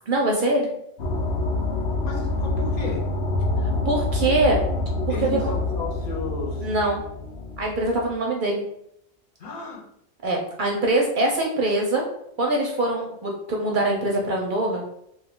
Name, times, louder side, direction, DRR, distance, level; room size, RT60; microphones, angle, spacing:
voice 1, 0.1-0.7 3.9-4.6 6.6-7.0 7.6-8.6 10.2-12.0 12.4-14.9, right 2 dB, 60° right, 0 dB, 0.6 m, -23 dB
sound 1, 1.0-8.1, left 2 dB, 85° left, 0.9 m, -26 dB
voice 2, 2.0-3.2 5.1-6.7 9.4-9.8, left 3 dB, 55° left, -3 dB, 1.0 m, -34 dB
2.8 x 2.3 x 3.5 m, 0.75 s
omnidirectional pair, 1.1 m